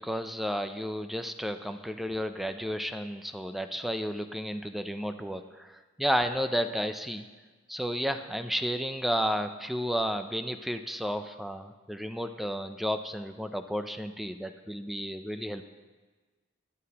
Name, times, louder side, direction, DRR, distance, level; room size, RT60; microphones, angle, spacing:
voice 1, 0.0-7.3 7.7-15.6, equal, ahead, 8 dB, 0.4 m, -32 dB
17.5 x 11.5 x 2.9 m, 1.3 s
head